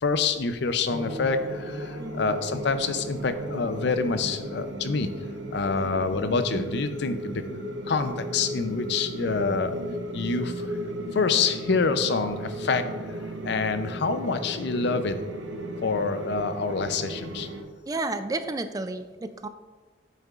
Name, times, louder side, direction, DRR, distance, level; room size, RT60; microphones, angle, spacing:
voice 1, 0.0-5.1 5.5-7.4 7.9-9.8 10.1-10.8 11.1-15.2 15.8-17.5, left 4 dB, 65° left, 10 dB, 0.5 m, -27 dB
sound 1, 0.9-17.6, right 1 dB, 90° right, 0.9 m, -35 dB
voice 2, 17.9-19.5, right 2 dB, 20° right, 10 dB, 0.3 m, -32 dB
8.5 x 6.6 x 2.4 m, 1.3 s
head